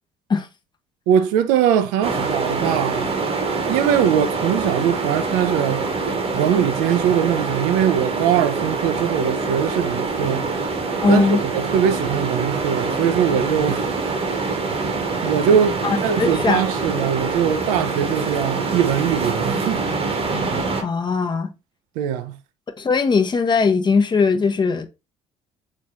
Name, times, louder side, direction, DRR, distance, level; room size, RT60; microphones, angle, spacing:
voice 1, 1.1-3.1 3.7-5.9 6.3-10.5 11.1-13.8 15.2-19.8 22.0-22.4, right 9 dB, 65° right, 0.5 m, -21 dB
sound 1, 2.0-20.8, right 4 dB, 40° right, 1.1 m, -25 dB
voice 2, 11.0-11.4 15.8-16.7 20.8-21.5 22.8-24.9, left 5 dB, 30° left, 0.8 m, -19 dB
4.1 x 3.1 x 2.7 m
figure-of-eight pair, 50°, 15 cm